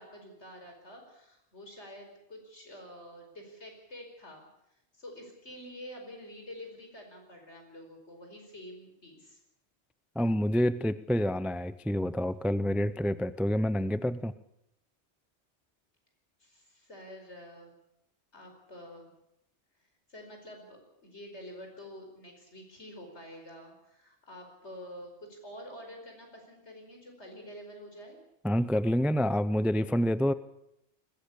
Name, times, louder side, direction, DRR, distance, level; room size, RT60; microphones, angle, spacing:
voice 1, 0.0-4.5 4.9-9.4 16.4-17.7 18.3-19.1 20.1-28.2, equal, 75° left, 3 dB, 5.4 m, -48 dB
voice 2, 10.2-14.3 28.4-30.3, equal, ahead, 15 dB, 0.4 m, -28 dB
21.0 x 16.0 x 8.5 m, 0.81 s
omnidirectional pair, 1.2 m